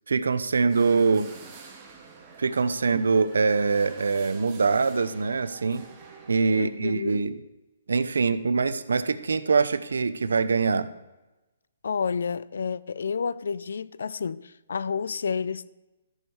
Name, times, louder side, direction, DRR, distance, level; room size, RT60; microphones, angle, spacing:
voice 1, 0.1-1.3 2.4-5.9 6.3-7.4 7.9-10.9, right 4 dB, 90° right, 0.6 m, -24 dB
sound 1, 0.7-6.6, right 5 dB, 25° right, 1.7 m, -48 dB
voice 2, 6.5-7.2 11.8-15.7, left 6 dB, 75° left, 0.4 m, -30 dB
13.5 x 6.5 x 4.7 m
hypercardioid pair, 160°, 0 cm